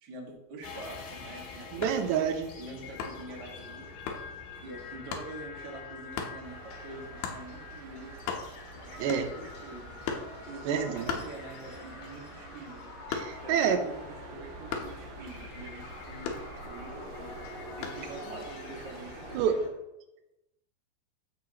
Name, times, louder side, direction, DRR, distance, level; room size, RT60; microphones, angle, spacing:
voice 1, 0.0-2.1 2.6-4.0 4.6-8.2 8.8-9.8 10.4-12.8 13.4-17.4 17.8-19.6, right 2 dB, 50° right, -1 dB, 1.2 m, -45 dB
sound 1, 0.6-19.7, left 4 dB, 90° left, 3.7 m, -46 dB
voice 2, 1.7-2.5 9.0-9.3 10.7-11.1 13.1-13.8 19.3-19.6, right 8 dB, 85° right, 7 dB, 3.0 m, -28 dB
sound 2, 1.8-2.1 3.0-3.3 4.1-4.3 5.1-5.3 6.2-6.4 7.2-7.5 7.9-8.7 9.1-9.5 10.1-10.4 11.1-11.8 12.2-13.6 14.7-15.0 16.3-16.9 17.8-18.1, left 6 dB, 70° left, 2.7 m, -36 dB
sound 3, 6.4-19.4, right 3 dB, 70° right, 2.1 m, -48 dB
14.5 x 5.8 x 3.0 m, 0.93 s
omnidirectional pair, 4.8 m